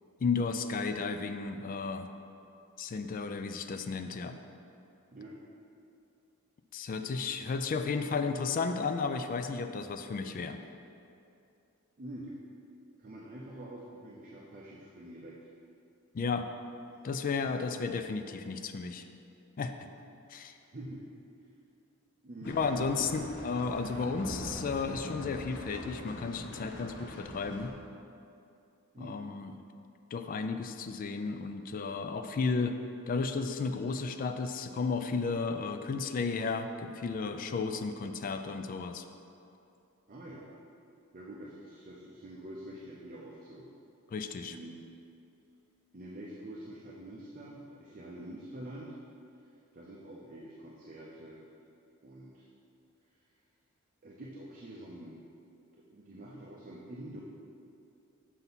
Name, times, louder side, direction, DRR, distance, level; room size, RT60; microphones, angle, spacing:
voice 1, 0.2-2.1 2.8-4.4 6.7-10.6 16.1-16.5 17.0-19.1 19.6-19.7 20.3-20.5 22.4-27.7 29.0-29.5 30.1-32.8 33.1-39.0 44.1-44.6, left 4 dB, 40° left, 8 dB, 0.3 m, -33 dB
voice 2, 12.0-12.3 13.0-15.5 20.6-21.0 22.2-22.6 22.9-23.2 28.9-29.2 40.1-40.5 41.1-43.7 44.5-44.9 45.9-49.0 49.7-51.4 52.0-52.5 54.0-55.3 55.9-57.2, right 1 dB, 40° right, -4 dB, 0.7 m, -46 dB
sound 1, 22.4-27.7, left 1 dB, 55° left, 0.9 m, -43 dB
7.2 x 5.7 x 4.1 m, 2.6 s
head